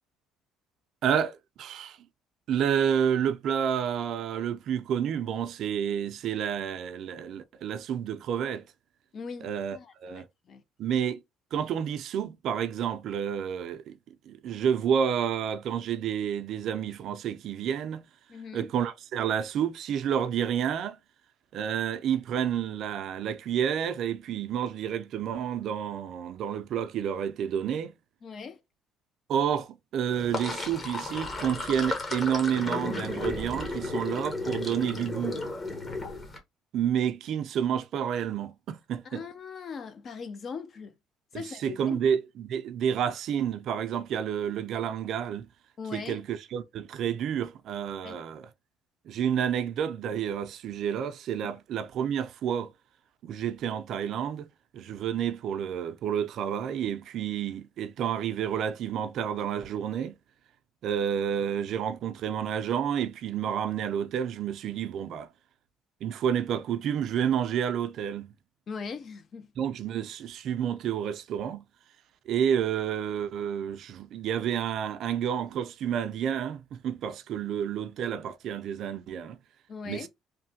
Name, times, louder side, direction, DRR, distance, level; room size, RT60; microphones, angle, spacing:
voice 1, 1.0-2.0 2.5-8.7 9.4-10.3 10.8-11.2 11.5-14.0 14.3-18.0 18.5-21.0 21.5-27.9 29.3-35.4 36.7-39.2 41.3-45.5 45.9-48.5 49.1-52.7 53.2-54.5 54.7-60.2 60.8-65.3 66.0-68.3 69.6-71.6 72.3-79.4 79.9-80.1, right 8 dB, 65° right, 0.4 m, -30 dB
voice 2, 9.1-10.6 18.3-18.7 28.2-28.6 39.0-40.9 41.3-42.0 45.8-46.2 48.0-48.2 51.4-51.6 68.7-69.5 79.7-80.1, left 5 dB, 45° left, 0.5 m, -40 dB
Sink (filling or washing), 30.1-36.4, left 2 dB, 30° left, 1.0 m, -34 dB
3.1 x 2.2 x 2.7 m
cardioid pair, 90°, 0 cm